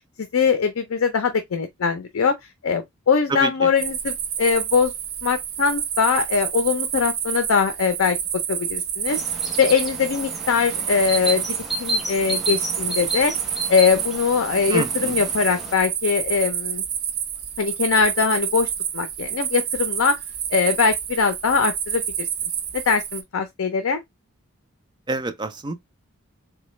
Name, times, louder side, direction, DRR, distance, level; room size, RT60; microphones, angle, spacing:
voice 1, 0.2-2.4 2.6-4.9 5.2-8.2 8.5-9.2 9.6-11.4 11.8-13.3 13.7-16.8 17.6-20.2 20.5-22.3 22.7-24.0, left 5 dB, 70° left, 0.5 m, -21 dB
sound 1, 3.8-23.2, right 9 dB, 75° right, 0.7 m, -28 dB
sound 2, 9.1-15.7, right 1 dB, ahead, 0.8 m, -31 dB
voice 2, 14.7-15.2 25.1-25.7, right 3 dB, 20° right, 0.4 m, -26 dB
3.9 x 2.2 x 3.0 m
head